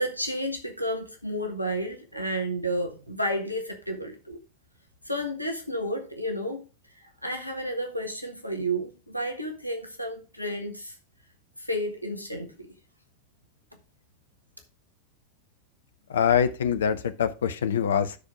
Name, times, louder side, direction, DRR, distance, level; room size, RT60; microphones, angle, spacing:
voice 1, 0.0-4.4 5.0-6.6 6.9-11.0 11.6-12.7, equal, 90° left, 1.4 m, -31 dB
voice 2, 16.1-18.2, left 8 dB, 65° left, 0.7 m, -24 dB
12.0 x 4.5 x 5.0 m
figure-of-eight pair, 90°, 0 cm